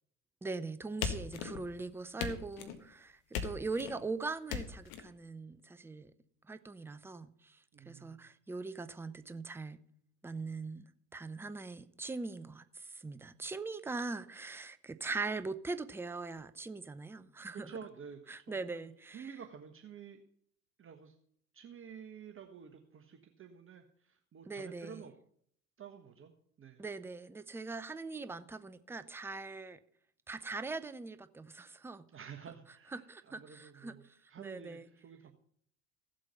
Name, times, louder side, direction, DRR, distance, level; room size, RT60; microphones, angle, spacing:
voice 1, 0.4-6.1 6.5-9.8 10.2-10.9 11.1-17.7 18.3-19.3 24.5-25.0 26.8-29.8 30.3-32.0 32.9-34.0 34.4-34.8, right 3 dB, 5° right, 0.6 m, -41 dB
sound 1, 1.0-1.8 2.2-2.8 3.3-4.0 4.5-5.0, left 7 dB, 55° left, 1.8 m, -38 dB
voice 2, 7.7-8.3 17.5-20.2 20.8-21.2 21.5-25.1 25.8-26.3 26.6-26.8 32.1-35.3, right 7 dB, 25° right, 1.3 m, -51 dB
15.0 x 7.7 x 5.7 m
figure-of-eight pair, 65°, 47 cm